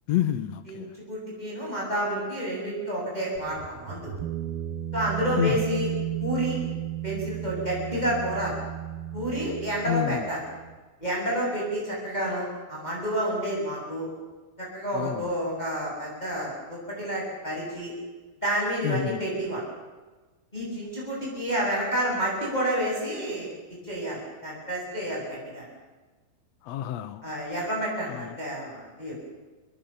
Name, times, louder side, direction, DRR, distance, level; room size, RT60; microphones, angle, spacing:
voice 1, 0.1-0.9 5.4-5.6 9.9-10.3 14.9-15.3 18.8-19.2 26.6-27.2 28.1-28.4, left 12 dB, 90° left, 1.5 m, -28 dB
voice 2, 1.1-4.1 4.9-5.9 6.2-6.6 7.0-8.6 9.1-10.4 11.0-14.1 14.6-17.9 18.4-19.6 20.5-23.6 23.8-25.7 27.2-29.1, equal, 10° left, 7.3 m, -29 dB
sound 1, 3.4-10.8, right 13 dB, 70° right, 2.9 m, -34 dB
26.5 x 22.5 x 7.1 m
omnidirectional pair, 4.6 m